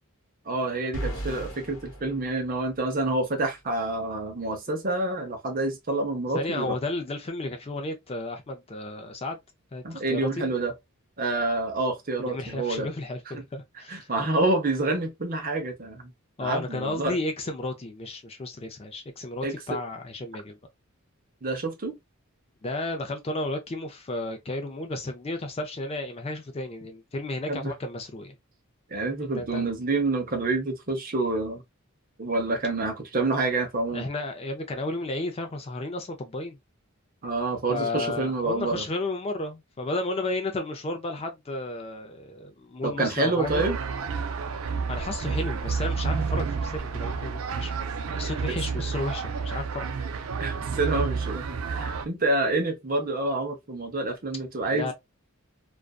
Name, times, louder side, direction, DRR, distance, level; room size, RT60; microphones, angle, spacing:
voice 1, 0.5-6.8 9.8-10.7 11.2-12.9 13.3-13.4 13.9-16.1 16.4-17.2 19.4-19.8 21.4-21.9 27.5-27.7 28.9-31.6 32.2-34.1 37.2-38.8 42.8-43.8 48.9-49.0 50.4-54.9, right 2 dB, 40° right, 0.7 m, -28 dB
sound 1, 0.9-3.1, right 1 dB, 70° left, 1.0 m, -36 dB
voice 2, 6.3-9.4 9.7-10.5 12.2-14.1 16.4-20.6 22.6-28.3 29.3-29.7 33.9-36.6 37.7-43.6 44.9-47.7 48.1-49.9 54.7-54.9, left 2 dB, 25° left, 0.4 m, -33 dB
sound 2, 43.4-52.1, right 5 dB, 75° right, 0.4 m, -30 dB
2.5 x 2.2 x 2.2 m
head